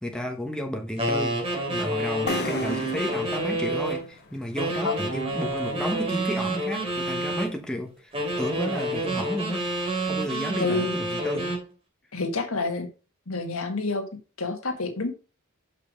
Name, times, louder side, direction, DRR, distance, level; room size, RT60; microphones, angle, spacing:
voice 1, 0.0-1.4 1.7-8.1 8.4-9.7 10.1-11.6, equal, 5° left, 1.0 m, -32 dB
sound 1, 1.0-4.1 4.6-7.5 8.1-11.7, right 1 dB, 25° right, 2.9 m, -28 dB
sound 2, 2.3-5.9, left 2 dB, 50° left, 1.0 m, -36 dB
voice 2, 10.6-10.9 12.1-12.9 13.3-14.0 14.4-15.1, left 3 dB, 75° left, 1.7 m, -28 dB
6.5 x 5.6 x 5.0 m
head